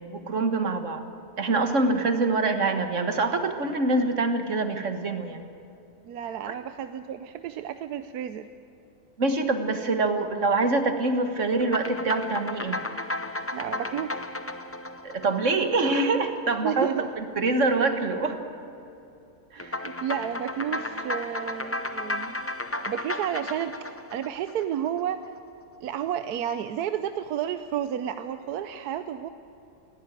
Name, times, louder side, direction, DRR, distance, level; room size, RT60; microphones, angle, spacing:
voice 1, 0.1-1.1 1.4-5.4 6.5-6.6 9.2-12.8 15.0-16.9 17.4-18.4 19.5-19.8, right 3 dB, 55° right, 7 dB, 1.8 m, -25 dB
voice 2, 6.0-8.5 13.5-14.2 16.6-17.1 19.6-25.3 25.8-29.3, right 10 dB, 85° right, 10 dB, 1.2 m, -31 dB
sound 1, 11.6-16.3 19.6-25.0, left 2 dB, 20° left, 0.4 m, -34 dB
20.0 x 17.0 x 9.1 m, 2.7 s
omnidirectional pair, 1.6 m